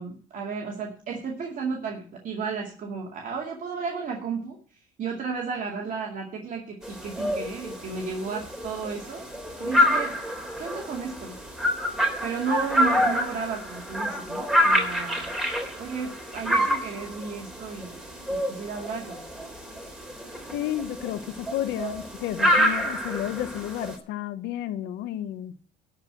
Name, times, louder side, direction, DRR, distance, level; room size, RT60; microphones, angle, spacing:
voice 1, 0.0-4.6 5.0-9.3 9.6-10.1 10.6-11.4 12.2-15.3 15.8-18.0 18.3-19.2, right 5 dB, 50° right, 2.3 m, -33 dB
sound 1, 6.8-24.0, equal, 5° right, 3.2 m, -27 dB
voice 2, 20.5-25.5, left 12 dB, 80° left, 1.0 m, -32 dB
12.0 x 4.9 x 8.7 m
cardioid pair, 110°, 17 cm